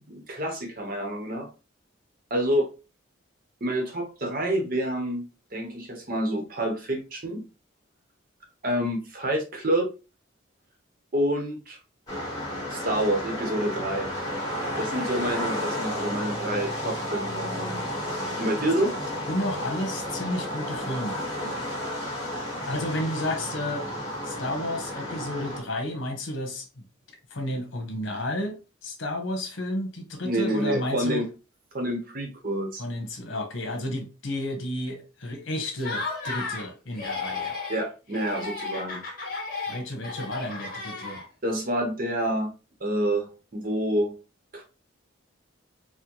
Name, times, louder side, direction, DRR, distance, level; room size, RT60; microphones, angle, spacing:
voice 1, 0.1-1.5 2.3-2.7 3.6-7.4 8.6-9.9 11.1-11.8 12.7-14.1 14.8-17.9 18.4-18.9 21.4-21.5 30.2-31.3 31.7-32.8 37.7-39.0 41.4-42.5 42.8-44.1 44.5-44.6, right 1 dB, 45° right, 0.9 m, -28 dB
sound 1, 12.1-25.6, equal, 20° left, 1.6 m, -32 dB
voice 2, 19.3-21.2 22.6-23.9 24.2-26.8 27.3-31.2 32.8-37.6 39.7-41.2, left 1 dB, 75° left, 1.0 m, -32 dB
Laughter, 35.7-36.7 36.9-37.8 38.1-41.5, left 4 dB, 45° left, 1.2 m, -34 dB
4.3 x 2.1 x 2.9 m
head